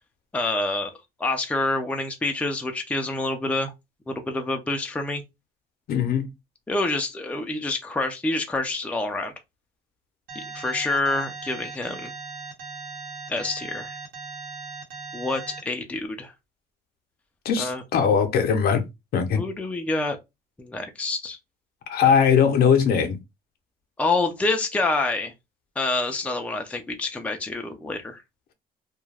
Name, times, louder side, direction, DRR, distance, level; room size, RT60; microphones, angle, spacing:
voice 1, 0.3-0.9 1.2-3.7 4.1-5.2 6.7-9.3 10.3-12.1 13.3-14.0 15.1-16.3 17.6-17.8 19.4-20.2 20.6-21.4 24.0-25.3 25.8-28.2, left 2 dB, 10° left, 0.4 m, -27 dB
voice 2, 5.9-6.3 17.4-18.8 19.1-19.4 21.9-23.2, left 7 dB, 65° left, 0.7 m, -20 dB
Alarm, 10.3-15.6, right 4 dB, 65° right, 1.0 m, -38 dB
2.3 x 2.1 x 3.2 m
cardioid pair, 110°, 17 cm